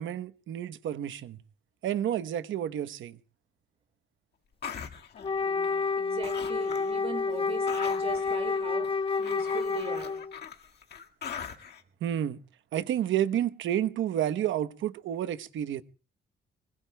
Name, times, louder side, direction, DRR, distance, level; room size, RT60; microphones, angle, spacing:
voice 1, 0.0-1.4 1.8-3.2 12.0-12.4 12.7-15.8, right 10 dB, 75° right, 1.1 m, -30 dB
sound 1, 4.6-6.0 6.2-7.0 7.3-11.8, left 7 dB, 55° left, 1.9 m, -41 dB
Wind instrument woodwind instrument, 5.2-10.4, left 4 dB, 25° left, 0.9 m, -29 dB
voice 2, 5.4-10.2, right 4 dB, 30° right, 2.4 m, -40 dB
25.0 x 20.5 x 2.3 m
cardioid pair, 90°, 20 cm